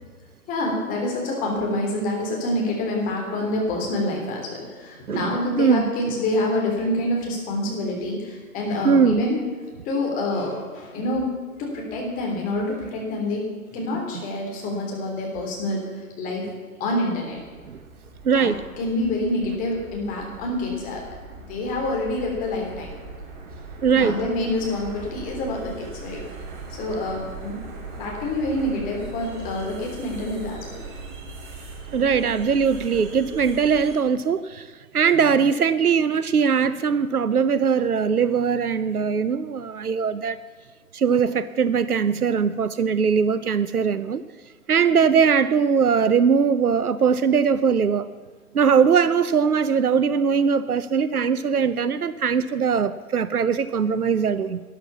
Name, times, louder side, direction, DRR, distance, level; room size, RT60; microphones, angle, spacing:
voice 1, 0.5-9.4 9.9-11.3 11.6-13.4 13.7-16.5 16.8-17.4 18.3-21.0 21.5-22.9 23.9-26.2 26.7-27.6 28.0-30.8, left 1 dB, 20° left, -1 dB, 3.5 m, -27 dB
voice 2, 5.1-5.9 8.8-9.2 17.7-17.8 18.2-18.6 23.8-24.1 31.9-34.7 34.9-40.4 40.9-44.2 44.7-48.1 48.5-54.6, right 6 dB, 85° right, 15 dB, 0.7 m, -21 dB
sound 1, 17.3-34.0, right 4 dB, 35° right, 2.7 m, -39 dB
13.0 x 11.0 x 7.2 m, 1.5 s
figure-of-eight pair, 135°, 43 cm